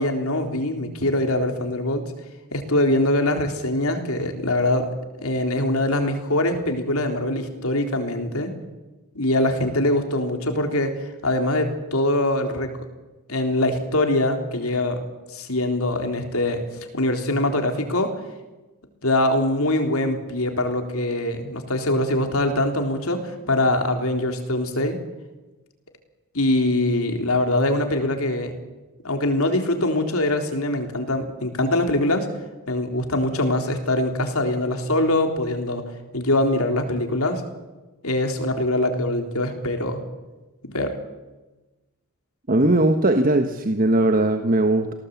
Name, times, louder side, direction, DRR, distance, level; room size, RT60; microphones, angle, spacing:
voice 1, 0.0-2.0 2.5-4.9 5.2-8.5 9.1-10.9 11.2-12.7 13.3-15.0 15.3-16.6 16.9-18.1 19.0-25.0 26.3-28.5 29.0-32.3 32.7-35.8 36.1-37.4 38.0-40.0 40.6-40.9, left 1 dB, 75° left, 5 dB, 3.9 m, -23 dB
voice 2, 42.5-44.9, right 2 dB, 40° right, 6 dB, 1.3 m, -19 dB
28.0 x 18.5 x 8.5 m, 1.1 s
head